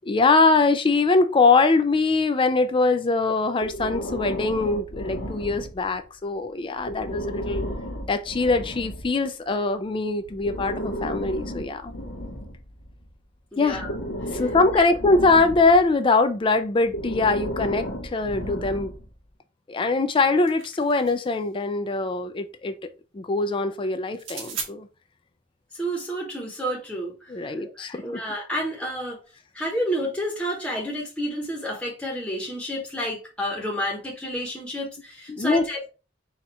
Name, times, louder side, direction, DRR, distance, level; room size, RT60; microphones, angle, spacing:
voice 1, 0.1-7.7 8.1-11.9 13.6-18.9 19.7-22.7 23.1-24.9 27.3-28.2 35.3-35.6, left 3 dB, 25° left, 0.4 m, -22 dB
Breathing, 3.6-6.0 6.8-9.1 10.2-13.1 13.7-15.9 16.8-19.1, equal, 75° left, 0.9 m, -33 dB
voice 2, 13.5-13.9 14.3-14.4 14.7-14.9 25.7-29.2 29.5-35.9, equal, 5° left, 0.9 m, -30 dB
sound 1, 20.1-21.4 24.1-24.7, right 5 dB, 80° right, 1.3 m, -37 dB
4.3 x 2.4 x 4.2 m
head